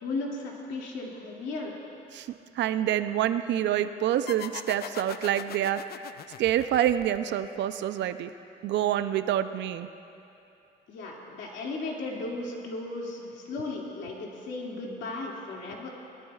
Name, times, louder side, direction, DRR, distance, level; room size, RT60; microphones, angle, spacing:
voice 1, 0.0-1.8 10.9-15.9, left 2 dB, 70° left, -2 dB, 2.4 m, -35 dB
voice 2, 2.1-5.8 6.4-8.3 8.6-9.9, right 11 dB, 65° right, 11 dB, 0.6 m, -27 dB
sound 1, 4.3-7.6, left 9 dB, 55° left, 0.5 m, -41 dB
21.0 x 13.0 x 2.4 m, 2.7 s
supercardioid pair, 80°, 20 cm